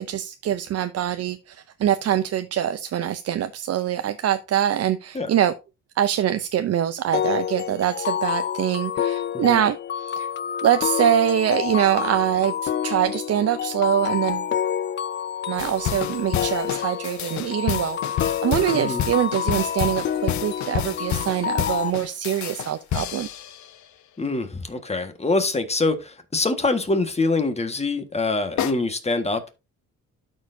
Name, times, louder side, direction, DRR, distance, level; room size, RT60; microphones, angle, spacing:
voice 1, 0.0-5.5 6.0-10.3 10.6-14.5 15.5-23.3, right 11 dB, 55° right, 0.6 m, -24 dB
sound 1, 7.1-21.9, left 9 dB, 40° left, 0.4 m, -28 dB
sound 2, 15.6-23.8 28.6-28.7, left 10 dB, 70° left, 0.8 m, -29 dB
voice 2, 24.2-29.5, left 3 dB, 20° left, 1.5 m, -24 dB
12.5 x 4.6 x 2.7 m
cardioid pair, 90°, 30 cm